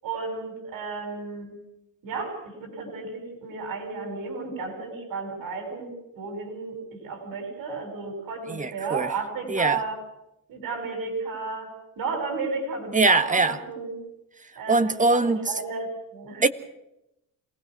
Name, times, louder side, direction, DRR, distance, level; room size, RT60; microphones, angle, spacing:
voice 1, 0.0-1.5 2.0-6.7 7.0-10.0 10.5-13.9 14.6-16.5, right 4 dB, 75° right, 7.1 m, -33 dB
voice 2, 8.5-9.1 9.5-9.8 12.9-13.6 14.7-15.5 16.4-16.5, right 3 dB, 20° right, 1.7 m, -22 dB
28.0 x 20.0 x 6.2 m
cardioid pair, 120°, 34 cm